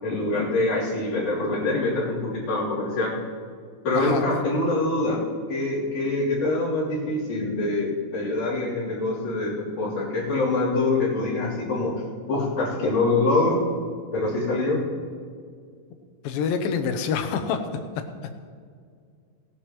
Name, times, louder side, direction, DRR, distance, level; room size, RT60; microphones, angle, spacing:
voice 1, 0.0-3.1 3.8-5.2 5.5-11.9 12.3-13.6 14.1-14.8, left 2 dB, 55° left, -8 dB, 4.6 m, -24 dB
voice 2, 4.0-4.4 16.2-17.7 18.2-18.3, left 6 dB, 80° left, 7 dB, 2.6 m, -27 dB
18.5 x 11.5 x 3.0 m, 2.1 s
omnidirectional pair, 4.2 m